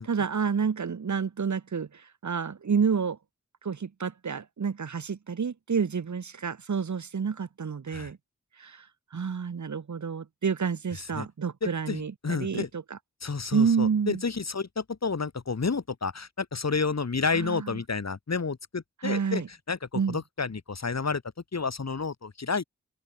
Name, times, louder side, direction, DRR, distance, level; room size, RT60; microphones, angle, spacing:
voice 1, 0.0-3.2 3.6-8.2 8.6-8.9 9.1-13.0 13.5-14.2 17.3-17.8 19.0-19.5 19.9-20.2, right 6 dB, 70° right, 2.0 m, -29 dB
voice 2, 11.6-12.7 13.2-21.2 21.5-22.6, left 4 dB, 60° left, 4.6 m, -30 dB
open air
wide cardioid pair, 65°, 30 cm